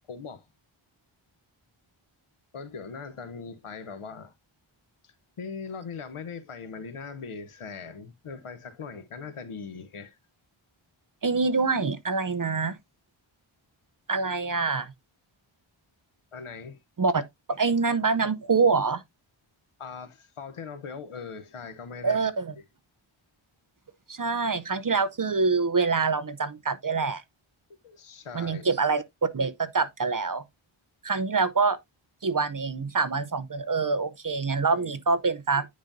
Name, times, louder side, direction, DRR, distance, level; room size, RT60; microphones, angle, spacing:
voice 1, 0.1-0.5 2.5-4.3 5.0-10.2 16.3-16.8 19.8-22.2 22.6-22.7 27.7-28.7 34.6-34.9, left 5 dB, 85° left, 1.0 m, -40 dB
voice 2, 11.2-12.8 14.1-14.9 17.0-17.2 17.5-19.0 22.0-22.5 24.1-27.2 28.3-29.0 29.3-30.4 31.0-31.8 32.2-35.7, right 4 dB, 40° right, 0.7 m, -25 dB
9.5 x 5.1 x 2.6 m
wide cardioid pair, 85°, 49 cm